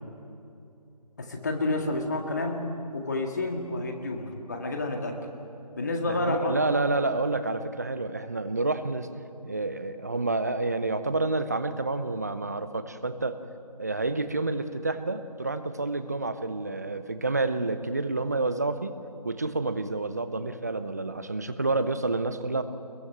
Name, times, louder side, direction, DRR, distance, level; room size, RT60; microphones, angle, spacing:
voice 1, 1.2-2.6 2.9-5.2 5.8-6.6, left 2 dB, 25° left, 3 dB, 1.9 m, -29 dB
voice 2, 6.0-9.1 9.4-13.4 13.8-18.9 19.2-22.6, right 3 dB, 25° right, 11 dB, 0.8 m, -29 dB
22.5 x 22.0 x 9.1 m, 2.7 s
figure-of-eight pair, 170°, 21 cm